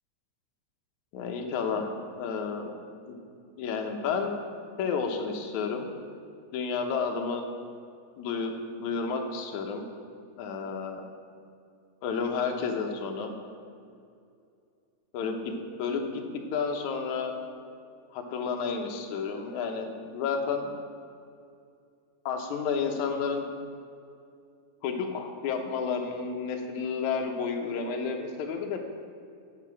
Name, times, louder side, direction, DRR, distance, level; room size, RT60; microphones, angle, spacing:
voice 1, 1.1-2.7 3.1-3.2 3.6-4.4 4.8-5.9 6.5-7.4 8.2-9.9 10.4-11.0 12.0-13.3 15.1-15.4 15.8-16.2 16.5-17.4 18.1-20.7 22.3-23.4 24.8-28.8, left 5 dB, 70° left, 4 dB, 2.2 m, -31 dB
9.0 x 7.5 x 5.9 m, 2.4 s
omnidirectional pair, 3.7 m